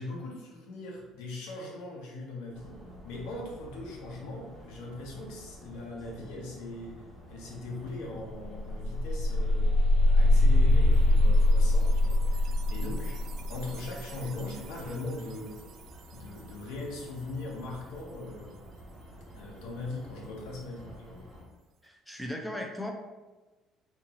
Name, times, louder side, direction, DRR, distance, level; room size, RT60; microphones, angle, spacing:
voice 1, 0.0-7.0 7.3-9.7 10.0-13.2 13.5-15.6 16.1-18.6 19.3-21.3, left 2 dB, 90° left, -1 dB, 0.9 m, -40 dB
sound 1, 2.5-21.4, equal, 15° right, 1.4 m, -50 dB
sound 2, 7.9-8.0 8.3-15.1, left 1 dB, 60° right, 0.3 m, -24 dB
voice 2, 21.8-22.9, left 1 dB, 5° left, 2 dB, 0.5 m, -37 dB
3.5 x 3.0 x 2.9 m, 1.2 s
cardioid pair, 110°, 0 cm